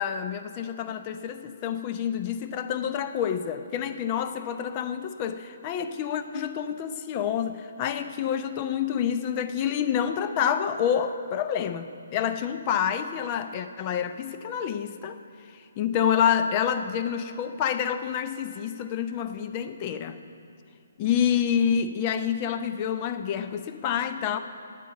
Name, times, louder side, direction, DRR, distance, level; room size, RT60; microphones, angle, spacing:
voice 1, 0.0-15.2 15.5-20.2 21.0-24.4, left 8 dB, 30° left, 9 dB, 0.6 m, -28 dB
9.0 x 8.4 x 9.4 m, 2.6 s
figure-of-eight pair, 135°, 0 cm